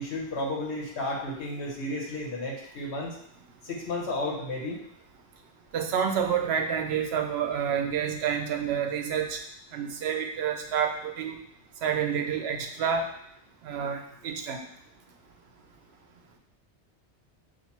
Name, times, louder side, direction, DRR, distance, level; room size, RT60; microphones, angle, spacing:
voice 1, 0.0-3.2 3.6-4.8, left 1 dB, 75° left, -1 dB, 1.1 m, -32 dB
voice 2, 5.7-9.4 9.7-11.4 11.8-13.1 13.6-14.6, right 7 dB, 70° right, 4 dB, 0.8 m, -28 dB
5.7 x 2.5 x 2.8 m, 0.70 s
omnidirectional pair, 1.1 m